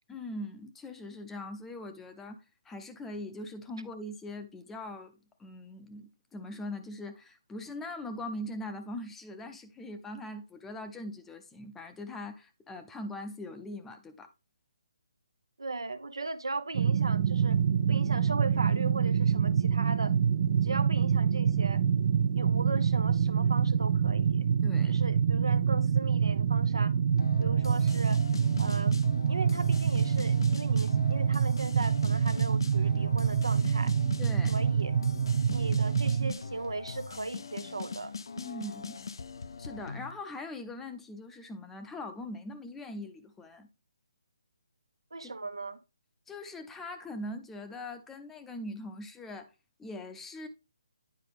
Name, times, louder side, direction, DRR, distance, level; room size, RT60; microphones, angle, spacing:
voice 1, 0.1-5.1 5.4-14.3 24.6-25.0 34.2-34.5 38.4-39.0 39.6-43.7 45.2-45.3 46.3-49.5 49.8-50.5, left 1 dB, 10° left, 0.5 m, -41 dB
voice 2, 15.6-17.6 17.9-20.1 20.6-21.8 22.4-24.5 24.8-26.9 27.4-28.2 28.6-29.0 29.3-33.9 34.5-35.0 35.5-38.1 45.1-45.8, right 3 dB, 85° right, 0.7 m, -37 dB
sound 1, 16.7-36.3, right 7 dB, 40° right, 0.3 m, -26 dB
sound 2, 27.2-40.1, left 5 dB, 70° left, 0.5 m, -41 dB
9.7 x 4.8 x 3.4 m
figure-of-eight pair, 155°, 3 cm